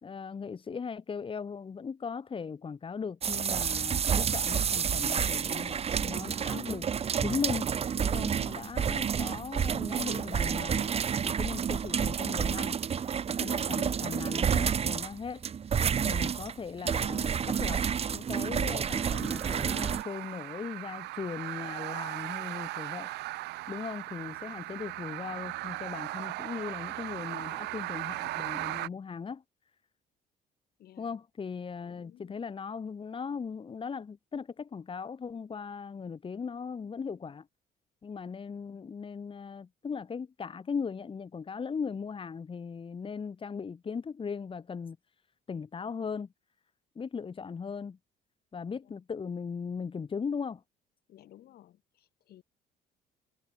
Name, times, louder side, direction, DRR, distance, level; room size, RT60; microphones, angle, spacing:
voice 1, 0.0-6.9 7.2-10.9 11.2-12.8 13.3-15.4 16.0-17.8 18.1-23.1 23.7-29.4 31.0-37.5 38.0-45.0 45.5-46.3 46.9-48.0 48.5-50.6, left 5 dB, 30° left, 3.1 m, -38 dB
sound 1, 3.2-20.0, right 7 dB, 35° right, 1.2 m, -30 dB
voice 2, 8.9-9.4 30.8-31.2 31.8-32.3 48.8-49.0 51.1-52.4, left 13 dB, 65° left, 5.7 m, -57 dB
sound 2, 18.8-28.9, right 19 dB, 85° right, 3.3 m, -38 dB
cardioid pair, 110°, 17 cm